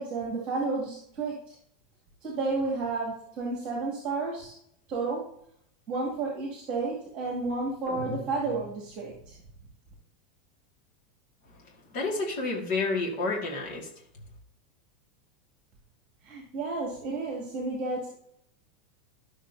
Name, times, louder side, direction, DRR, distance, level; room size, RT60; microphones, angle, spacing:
voice 1, 0.0-1.6 2.2-4.5 4.9-5.2 5.9-9.4 16.2-18.1, right 3 dB, 25° right, -1 dB, 2.3 m, -31 dB
sound 1, 7.9-9.3, left 2 dB, ahead, 2.1 m, -42 dB
voice 2, 11.9-13.9, left 3 dB, 40° left, -2 dB, 2.1 m, -30 dB
12.0 x 6.3 x 2.8 m, 0.70 s
supercardioid pair, 170°, 5 cm